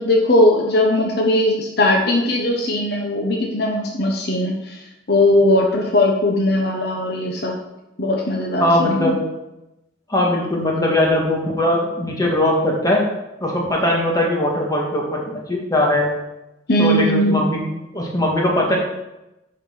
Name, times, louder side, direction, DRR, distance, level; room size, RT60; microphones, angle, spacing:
voice 1, 0.0-4.8 5.1-7.6 8.0-9.2 16.7-17.5, left 1 dB, 55° left, 1 dB, 1.0 m, -19 dB
voice 2, 8.6-9.2 10.1-13.0 13.4-15.2 15.5-16.1 16.8-17.6 17.9-18.8, left 1 dB, 20° left, -2 dB, 1.7 m, -20 dB
9.4 x 4.4 x 5.8 m, 0.94 s
head